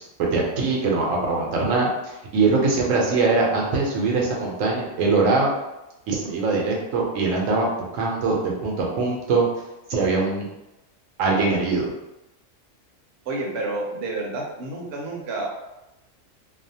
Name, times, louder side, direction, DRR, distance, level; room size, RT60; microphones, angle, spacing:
voice 1, 0.0-5.5 6.1-9.4 9.9-10.5 11.2-11.9, right 3 dB, 85° right, -2 dB, 1.0 m, -22 dB
voice 2, 13.3-15.5, right 2 dB, 60° right, -2 dB, 0.7 m, -29 dB
2.6 x 2.1 x 2.7 m, 0.94 s
omnidirectional pair, 1.3 m